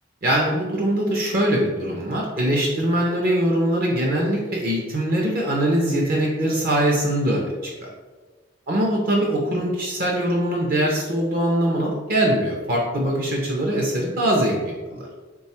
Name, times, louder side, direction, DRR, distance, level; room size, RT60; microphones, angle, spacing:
voice 1, 0.2-7.5 7.8-7.9 8.7-15.1, right 1 dB, 50° right, -2 dB, 0.5 m, -22 dB
3.2 x 2.3 x 4.2 m, 1.3 s
head